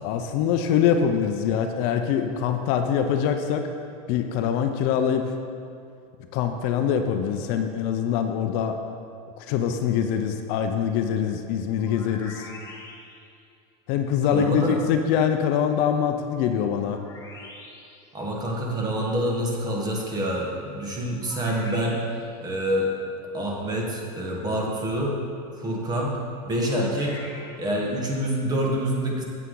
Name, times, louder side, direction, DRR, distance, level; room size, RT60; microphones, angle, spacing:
voice 1, 0.0-3.7 4.1-5.3 6.3-8.8 9.4-12.5 13.9-17.0, left 8 dB, 55° left, 6 dB, 0.6 m, -24 dB
sound 1, 11.7-13.4 16.9-18.1 21.2-22.4 26.6-27.9, left 2 dB, 15° left, 1.4 m, -44 dB
voice 2, 14.3-14.8 18.1-22.0 22.4-22.9 23.3-25.2 25.6-26.2 26.4-27.2 27.6-29.2, equal, 20° right, -1 dB, 1.4 m, -26 dB
8.3 x 8.1 x 3.8 m, 2.4 s
supercardioid pair, 135°, 19 cm